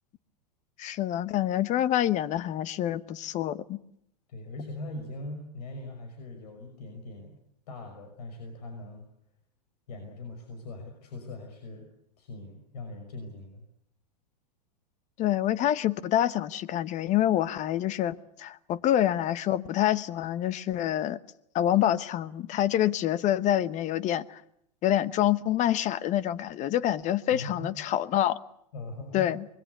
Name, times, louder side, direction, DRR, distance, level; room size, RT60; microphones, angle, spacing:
voice 1, 0.8-3.8 15.2-21.2 21.5-24.4 24.8-28.4 29.1-29.4, left 12 dB, 35° left, 1.1 m, -26 dB
voice 2, 4.3-7.4 7.7-9.0 9.9-11.9 12.2-13.6 27.3-27.7 28.7-29.3, left 2 dB, 70° left, 5.8 m, -41 dB
25.0 x 21.5 x 8.3 m
hypercardioid pair, 120°, 21 cm